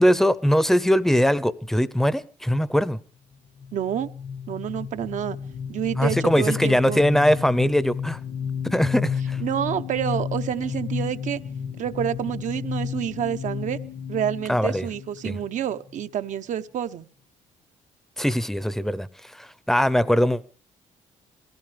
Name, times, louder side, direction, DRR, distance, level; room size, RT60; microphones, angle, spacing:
voice 1, 0.0-3.0 6.0-8.2 8.6-9.4 14.5-14.9 15.2-15.4 18.2-19.1 19.4-20.5, equal, 5° left, 0.6 m, -21 dB
sound 1, 3.6-16.0, left 7 dB, 65° left, 1.6 m, -32 dB
voice 2, 3.7-4.1 4.5-5.4 5.7-7.0 9.4-11.4 11.8-13.8 14.1-17.1, right 10 dB, 65° right, 0.8 m, -28 dB
22.5 x 16.5 x 3.3 m
cardioid pair, 110°, 14 cm